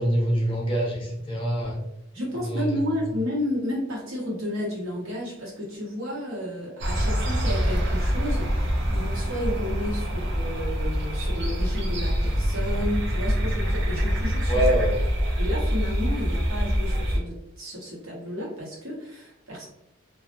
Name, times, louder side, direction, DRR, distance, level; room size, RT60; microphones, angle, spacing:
voice 1, 0.0-1.8 2.4-2.8 14.5-15.0, right 1 dB, 25° left, -3 dB, 0.6 m, -25 dB
voice 2, 2.1-14.7 15.4-19.7, left 1 dB, 85° right, -5 dB, 1.1 m, -32 dB
sound 1, 6.8-17.2, equal, 55° right, 0.5 m, -25 dB
2.5 x 2.0 x 2.9 m, 0.82 s
head